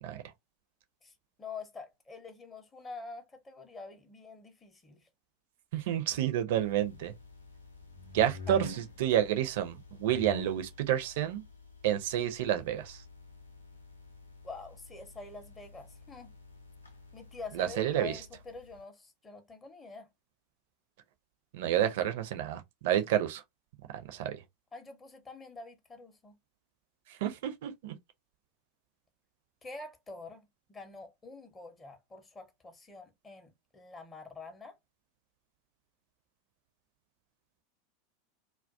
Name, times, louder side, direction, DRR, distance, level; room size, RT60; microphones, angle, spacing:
voice 1, 1.0-5.1 8.5-8.6 14.4-16.3 17.1-20.1 24.7-26.4 29.6-34.8, left 3 dB, 20° left, 0.6 m, -46 dB
voice 2, 5.7-7.1 8.1-11.4 11.8-13.0 17.5-18.1 21.5-23.4 23.9-24.4 27.1-27.9, right 11 dB, 55° right, 0.4 m, -30 dB
sound 1, 6.6-18.8, left 1 dB, 85° left, 0.6 m, -48 dB
2.2 x 2.2 x 2.5 m
figure-of-eight pair, 85°, 0 cm